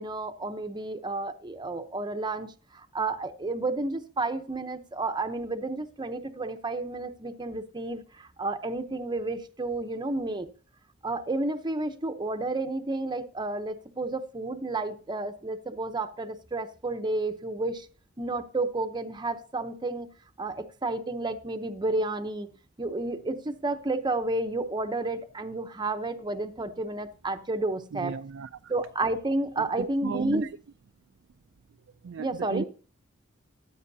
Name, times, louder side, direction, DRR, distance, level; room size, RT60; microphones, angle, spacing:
voice 1, 0.0-10.5 11.0-17.9 18.2-20.1 20.4-22.5 22.8-28.1 28.7-30.5 32.2-32.6, right 2 dB, 20° right, 0.7 m, -31 dB
voice 2, 27.9-28.7 29.6-30.5 32.0-32.6, right 6 dB, 65° right, 0.4 m, -35 dB
14.5 x 8.7 x 2.7 m
head